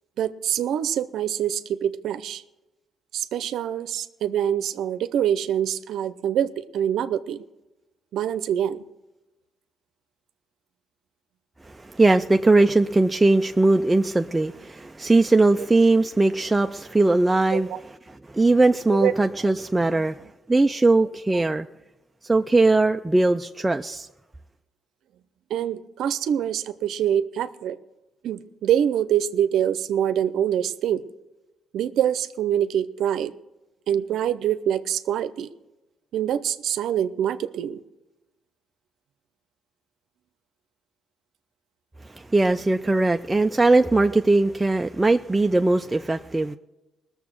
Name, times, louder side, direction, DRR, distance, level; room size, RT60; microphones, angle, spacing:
voice 1, 0.2-2.4 3.1-7.4 8.1-8.8 17.5-17.8 18.9-19.1 19.4-19.5 25.5-27.8 28.2-31.0 31.7-33.3 33.9-35.5 36.1-37.8 42.9-43.0, right 10 dB, 75° right, 13 dB, 0.6 m, -25 dB
voice 2, 11.7-20.2 20.5-21.7 22.2-24.1 42.1-46.6, right 2 dB, 15° right, 6 dB, 0.4 m, -20 dB
19.0 x 7.1 x 6.1 m, 1.0 s
cardioid pair, 90°, 0 cm